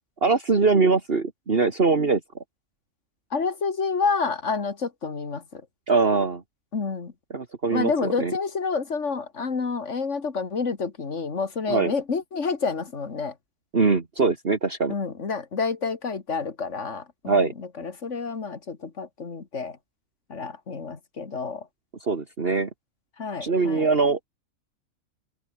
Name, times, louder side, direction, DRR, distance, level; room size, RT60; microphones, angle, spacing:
voice 1, 0.2-2.2 5.9-6.4 7.3-8.3 11.7-11.9 13.7-14.9 17.3-17.5 22.0-22.7 23.4-24.3, right 4 dB, 40° right, 2.2 m, -22 dB
voice 2, 3.3-5.6 6.7-7.1 7.7-13.3 14.9-19.8 20.3-21.7 23.2-23.9, left 5 dB, 55° left, 2.4 m, -29 dB
omnidirectional pair, 1.5 m